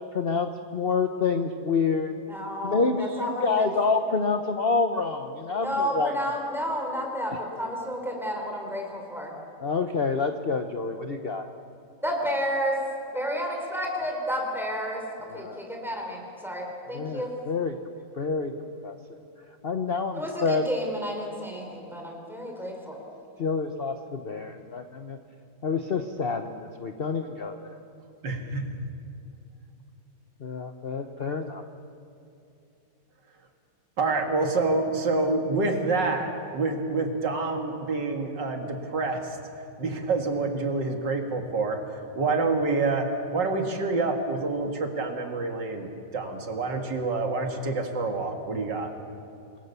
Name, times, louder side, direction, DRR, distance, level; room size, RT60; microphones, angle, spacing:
voice 1, 0.1-2.2 2.6-6.1 9.6-11.5 15.3-15.6 16.9-17.8 18.2-18.5 18.8-19.0 19.6-20.6 23.4-25.2 25.6-27.8 30.4-31.6, left 4 dB, 40° left, 7 dB, 0.9 m, -28 dB
voice 2, 2.3-3.8 5.6-9.3 12.0-12.8 13.1-17.3 20.2-23.0, equal, ahead, 0 dB, 4.3 m, -31 dB
voice 3, 28.2-28.6 34.0-39.4 39.8-41.8 42.2-43.1 43.3-48.9, right 3 dB, 80° right, 4 dB, 2.7 m, -27 dB
27.5 x 21.5 x 6.9 m, 2.6 s
omnidirectional pair, 1.9 m